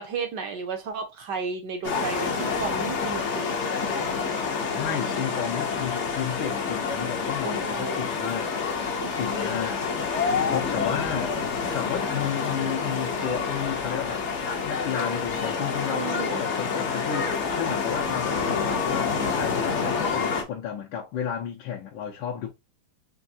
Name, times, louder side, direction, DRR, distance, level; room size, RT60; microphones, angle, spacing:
voice 1, 0.0-3.4 3.8-3.9 7.4-8.0 9.0-9.5 15.9-16.5, right 5 dB, 65° right, 1.2 m, -33 dB
sound 1, 1.8-20.4, left 5 dB, 55° left, 0.8 m, -28 dB
voice 2, 4.8-8.5 9.2-9.8 10.5-11.3 11.7-22.5, left 8 dB, 75° left, 1.5 m, -32 dB
4.6 x 3.1 x 2.6 m
omnidirectional pair, 2.2 m